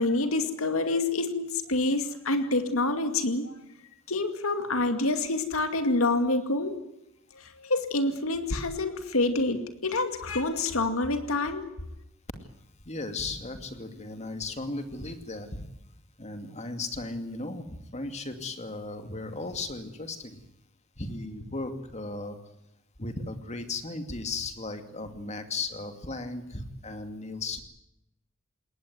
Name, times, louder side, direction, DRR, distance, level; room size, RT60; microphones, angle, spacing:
voice 1, 0.0-3.5 4.1-6.8 7.3-11.7, left 2 dB, 85° left, 7 dB, 2.3 m, -27 dB
voice 2, 12.9-15.7 16.2-20.4 21.0-22.4 23.0-27.6, left 3 dB, 35° left, 7 dB, 2.5 m, -36 dB
21.0 x 18.5 x 9.5 m, 0.87 s
head